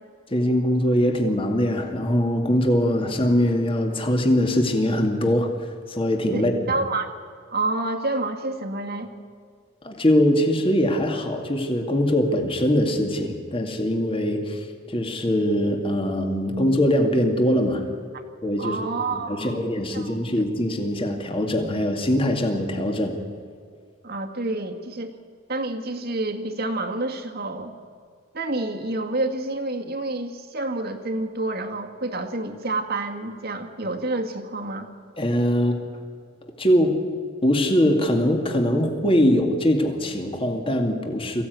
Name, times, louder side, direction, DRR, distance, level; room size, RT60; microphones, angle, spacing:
voice 1, 0.3-6.8 9.8-17.8 18.4-18.9 19.3-23.2 35.2-35.8 36.6-37.0 37.4-41.4, equal, 25° left, 4 dB, 2.3 m, -22 dB
voice 2, 6.3-7.1 7.5-9.1 18.1-18.2 18.6-19.7 19.9-20.2 24.0-25.2 25.5-27.7 28.3-34.9, right 2 dB, 50° right, 4 dB, 2.0 m, -28 dB
22.5 x 16.0 x 9.5 m, 2.1 s
head